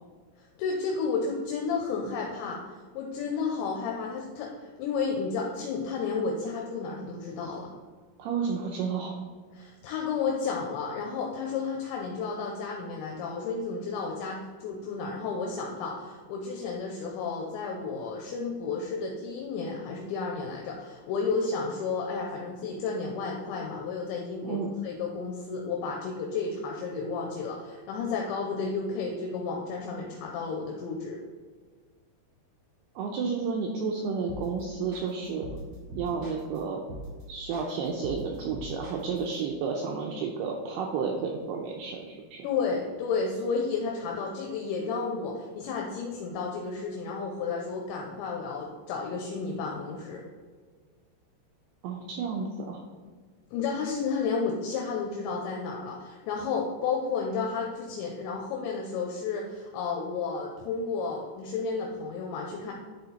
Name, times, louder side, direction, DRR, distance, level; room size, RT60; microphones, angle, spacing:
voice 1, 0.6-7.7 9.5-31.2 42.4-50.2 53.5-62.7, left 4 dB, 80° left, 0 dB, 2.9 m, -32 dB
voice 2, 8.2-9.2 24.4-24.7 33.0-35.5 36.0-36.8 37.3-42.5 51.8-52.8, right 5 dB, 85° right, 0 dB, 2.3 m, -31 dB
sound 1, 34.3-34.6 34.9-36.6 36.9-37.2 37.5-39.4, right 1 dB, 40° right, 2.3 m, -41 dB
10.5 x 4.3 x 4.0 m, 1.5 s
omnidirectional pair, 5.4 m